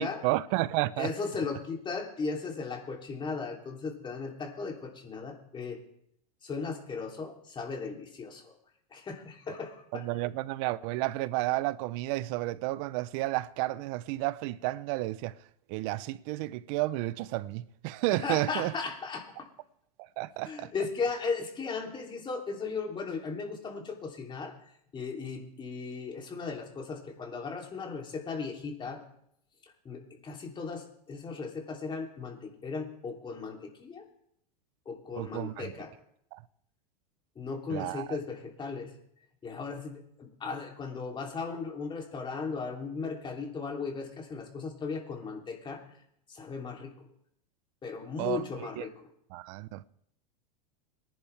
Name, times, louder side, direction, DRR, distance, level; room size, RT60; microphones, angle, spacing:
voice 1, 0.0-1.1 9.9-15.3 15.7-18.7 20.0-20.7 35.2-35.7 36.3-36.4 37.7-38.2 48.2-48.8 49.3-49.8, right 18 dB, 55° right, 0.8 m, -32 dB
voice 2, 1.0-5.8 6.4-8.5 8.9-10.0 18.2-19.5 20.4-24.5 24.9-29.0 29.8-34.0 34.8-35.9 37.3-38.9 39.4-45.8 46.3-46.9 47.8-49.1, left 4 dB, 25° left, 3.2 m, -36 dB
23.5 x 10.5 x 3.4 m
hypercardioid pair, 110°, 20 cm